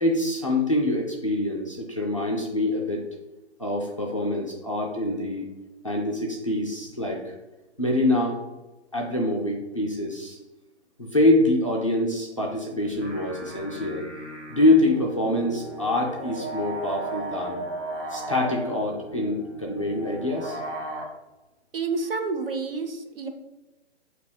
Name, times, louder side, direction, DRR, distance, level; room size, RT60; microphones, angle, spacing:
voice 1, 0.0-3.0 3.6-5.5 5.8-7.4 7.8-8.4 8.9-10.4 11.0-14.1 14.5-17.6 18.1-20.6, left 1 dB, 30° left, -1 dB, 0.4 m, -25 dB
sound 1, 12.8-21.1, right 1 dB, 90° right, 1.3 m, -36 dB
voice 2, 21.7-23.3, right 4 dB, 55° right, 5 dB, 0.7 m, -29 dB
4.2 x 2.8 x 3.8 m, 1.0 s
hypercardioid pair, 170°, 34 cm